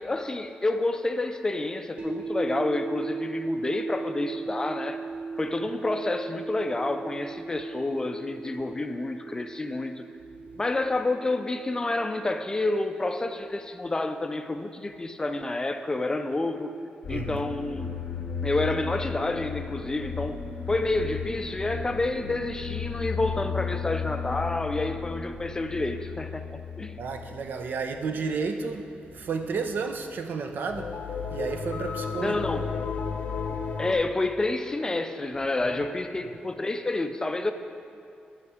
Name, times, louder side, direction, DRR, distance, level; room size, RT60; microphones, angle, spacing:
voice 1, 0.0-5.1 5.4-10.0 10.5-16.7 17.1-17.9 18.4-20.4 20.7-26.5 26.8-27.0 32.2-32.7 33.8-37.5, left 2 dB, 20° left, 8 dB, 0.4 m, -29 dB
sound 1, 2.0-14.1, right 4 dB, 40° right, 1.3 m, -38 dB
sound 2, 17.0-28.3 28.6-28.8 29.1-29.3 30.6-33.9, left 6 dB, 65° left, 0.7 m, -34 dB
voice 2, 17.1-17.4 27.0-31.0 31.3-32.4 35.6-35.8, right 5 dB, 65° right, 6 dB, 0.6 m, -32 dB
9.6 x 5.8 x 4.9 m, 2.6 s
wide cardioid pair, 125°, 3 cm